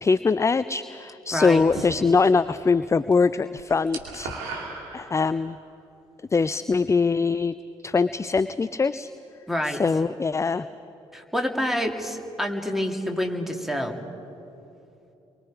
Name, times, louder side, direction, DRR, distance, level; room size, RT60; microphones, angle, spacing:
voice 1, 0.0-4.3 4.9-5.6 6.3-7.5 7.8-9.1 9.6-10.7, left 4 dB, 20° left, 15 dB, 0.5 m, -22 dB
voice 2, 1.3-1.6 9.5-9.8 11.1-13.9, equal, ahead, 3 dB, 2.7 m, -27 dB
sound 1, 1.5-2.5 2.8-5.5, right 4 dB, 70° right, 2.5 m, -37 dB
29.5 x 23.5 x 5.0 m, 2.9 s
figure-of-eight pair, 40°, 15 cm